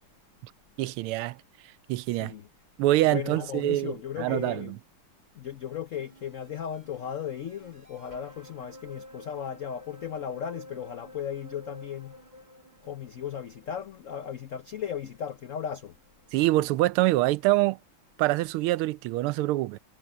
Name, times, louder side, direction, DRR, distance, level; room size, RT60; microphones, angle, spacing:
voice 1, 0.8-1.4 1.9-2.3 2.8-4.7 16.3-17.8 18.2-19.8, right 17 dB, 90° right, 1.5 m, -25 dB
voice 2, 3.1-4.8 5.3-12.2 12.8-16.0, left 9 dB, 80° left, 0.7 m, -36 dB
sound 1, 6.0-16.4 16.8-16.9, left 1 dB, 20° right, 2.4 m, -51 dB
omnidirectional pair, 2.3 m